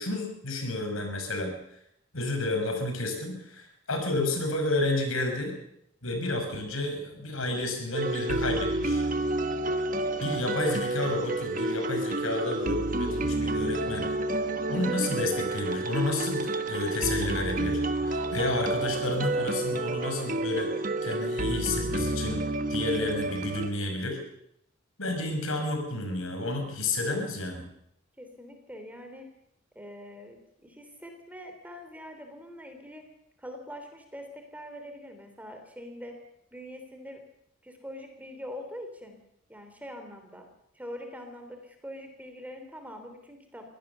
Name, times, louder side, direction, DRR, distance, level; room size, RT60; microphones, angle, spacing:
voice 1, 0.0-1.5 2.1-5.5 6.0-9.1 10.2-14.1 14.7-20.7 21.0-22.4 22.7-24.2 25.0-27.7, left 2 dB, 85° left, 5 dB, 5.7 m, -31 dB
sound 1, 7.9-23.7, right 2 dB, 40° right, 1.3 m, -29 dB
voice 2, 28.2-29.3 29.7-33.0 33.4-36.2 36.5-37.2 37.6-39.2 39.5-40.5 40.7-43.7, equal, 10° right, 5 dB, 3.2 m, -43 dB
23.5 x 16.5 x 6.9 m, 0.74 s
head